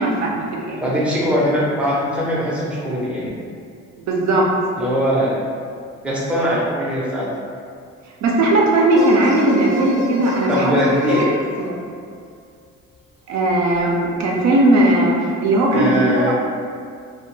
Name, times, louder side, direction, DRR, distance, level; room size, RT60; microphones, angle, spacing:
voice 1, 0.0-0.8 4.0-4.5 8.2-10.8 11.2-11.3 11.6-11.7 13.3-15.9 16.2-16.3, right 1 dB, 65° right, -2 dB, 0.5 m, -17 dB
voice 2, 0.8-3.3 4.8-5.4 6.0-7.3 10.5-11.3 15.7-16.3, equal, 5° right, -6 dB, 0.6 m, -21 dB
sound 1, 8.7-12.2 13.7-13.8, left 1 dB, 80° left, 0.7 m, -28 dB
2.2 x 2.1 x 3.0 m, 2.2 s
cardioid pair, 90°, 30 cm